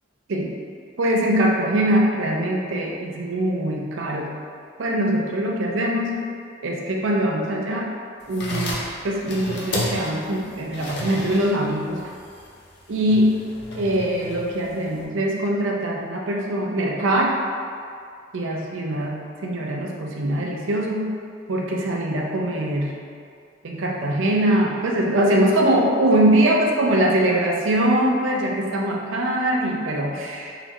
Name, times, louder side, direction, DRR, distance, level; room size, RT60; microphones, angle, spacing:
voice 1, 1.0-4.3 4.8-6.3 6.6-7.9 8.3-12.0 12.9-13.4 13.7-17.4 18.3-21.1 21.5-22.9 23.6-30.6, right 1 dB, 80° right, -1 dB, 0.5 m, -22 dB
sound 1, 8.2-15.0, left 1 dB, 60° left, 0.7 m, -33 dB
4.1 x 2.6 x 2.9 m, 2.3 s
head